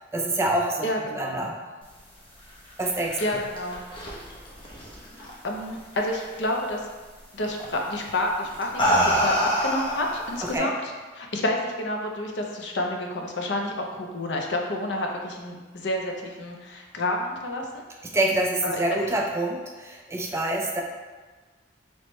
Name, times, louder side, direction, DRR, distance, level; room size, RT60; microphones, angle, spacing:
voice 1, 0.1-0.9 1.1-1.5 2.8-3.2 10.5-10.7 18.1-20.8, right 1 dB, 15° right, 0 dB, 0.4 m, -26 dB
voice 2, 0.8-1.5 3.2-3.8 5.2-6.9 7.3-9.3 9.6-10.7 11.1-17.8 18.6-19.0, left 1 dB, 65° left, 1 dB, 0.6 m, -29 dB
sound 1, 2.7-5.6 5.9-6.4 7.6-7.8 8.4-10.6, equal, 25° left, 0.7 m, -26 dB
4.4 x 3.1 x 3.1 m, 1.3 s
head